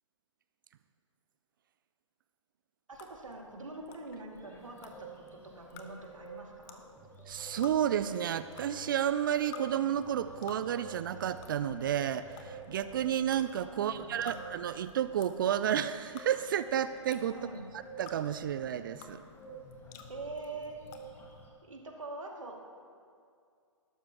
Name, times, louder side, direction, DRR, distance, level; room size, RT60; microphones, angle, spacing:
sound 1, 2.9-21.5, left 6 dB, 35° left, 1.1 m, -54 dB
voice 1, 2.9-5.1 5.5-6.8 13.7-14.4 17.3-17.7 20.1-20.8 21.6-22.7, right 2 dB, 75° right, 0 dB, 2.2 m, -44 dB
sound 2, 4.3-21.5, right 4 dB, 15° left, 1.8 m, -52 dB
sound 3, 6.9-14.9, right 4 dB, 10° right, 1.2 m, -55 dB
voice 2, 7.3-17.4 18.0-19.2, right 10 dB, 40° right, 13 dB, 0.4 m, -31 dB
19.5 x 12.5 x 2.9 m, 2.3 s
figure-of-eight pair, 125°, 17 cm